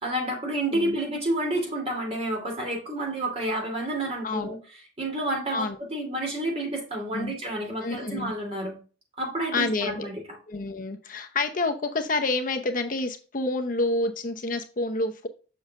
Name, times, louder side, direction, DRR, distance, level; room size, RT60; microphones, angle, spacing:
voice 1, 0.0-4.6 5.0-8.8 9.2-10.2, right 1 dB, 35° right, 0 dB, 2.9 m, -29 dB
voice 2, 4.2-4.6 5.5-5.8 7.1-7.3 7.8-8.3 9.5-10.1 10.5-15.3, left 2 dB, 50° left, 6 dB, 0.8 m, -28 dB
7.1 x 6.2 x 2.5 m, 0.36 s
head